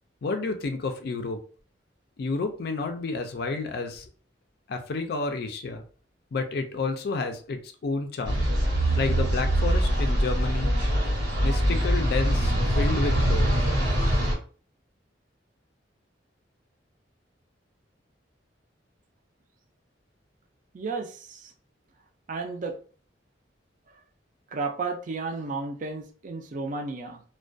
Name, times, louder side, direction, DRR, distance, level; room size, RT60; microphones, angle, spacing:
voice 1, 0.2-1.4 2.2-4.1 4.7-5.8 6.3-8.5 9.0-10.7 11.4-13.5, left 3 dB, 55° left, 6 dB, 0.4 m, -30 dB
sound 1, 8.2-14.3, equal, 85° right, 1.0 m, -23 dB
voice 2, 20.7-21.5 22.3-22.8 24.5-27.2, right 3 dB, 45° right, 4 dB, 0.4 m, -33 dB
2.3 x 2.2 x 2.5 m, 0.40 s
head